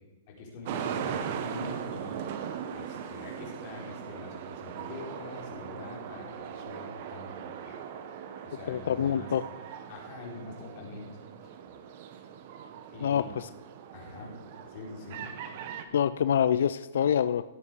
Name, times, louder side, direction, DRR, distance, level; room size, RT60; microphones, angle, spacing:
voice 1, 0.3-2.2 2.7-7.8 8.4-9.3 9.9-11.2 12.9-13.3 13.9-14.3 14.7-15.3, left 3 dB, 40° left, -2 dB, 4.2 m, -44 dB
sound 1, 0.6-15.8, right 8 dB, 45° right, 1.2 m, -39 dB
voice 2, 8.7-9.4 13.0-13.5 15.9-17.4, left 9 dB, 70° left, 14 dB, 0.4 m, -26 dB
16.5 x 8.2 x 4.8 m, 1.1 s
hypercardioid pair, 160°, 0 cm